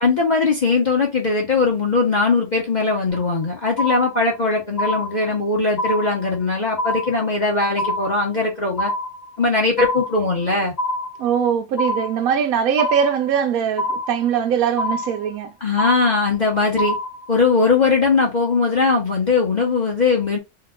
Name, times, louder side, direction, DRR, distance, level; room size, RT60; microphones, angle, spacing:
voice 1, 0.0-8.9 9.4-10.7 15.6-17.0 17.3-20.4, left 3 dB, 40° left, 0.7 m, -20 dB
sound 1, 3.1-3.4 3.8-4.4 4.8-5.4 5.8-6.4 6.8-7.4 7.8-8.4 8.8-9.4 9.8-10.4 10.8-11.4 11.8-12.4 12.8-13.4 13.8-14.4 14.8-15.4 15.8-16.4 16.8-17.4, left 1 dB, 90° left, 0.3 m, -26 dB
voice 2, 11.2-15.6, right 8 dB, 75° right, 1.0 m, -21 dB
2.9 x 2.3 x 3.4 m
omnidirectional pair, 1.6 m